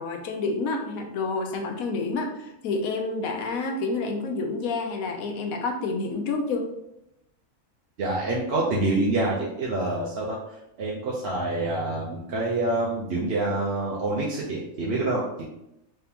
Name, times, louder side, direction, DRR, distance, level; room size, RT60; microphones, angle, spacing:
voice 1, 0.0-6.6, left 3 dB, 85° left, 3 dB, 1.1 m, -29 dB
voice 2, 8.0-15.4, right 2 dB, 55° right, -4 dB, 0.8 m, -27 dB
3.6 x 3.4 x 2.8 m, 0.86 s
omnidirectional pair, 1.5 m